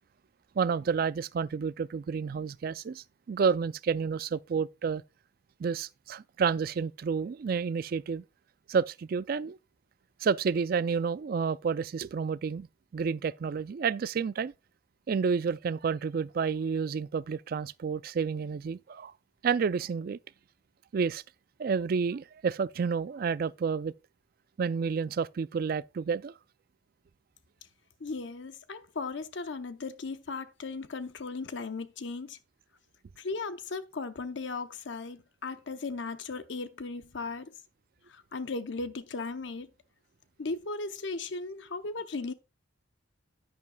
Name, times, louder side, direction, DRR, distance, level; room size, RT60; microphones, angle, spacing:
voice 1, 0.6-5.0 5.6-8.2 8.7-9.6 10.2-12.7 12.9-14.5 15.1-19.1 19.4-20.2 20.9-21.2 21.6-23.9 24.6-26.3, right 6 dB, 50° right, 0.3 m, -30 dB
voice 2, 28.0-32.4 33.2-37.5 38.1-39.7 40.4-42.3, left 3 dB, 70° left, 0.7 m, -37 dB
10.5 x 9.6 x 2.3 m
head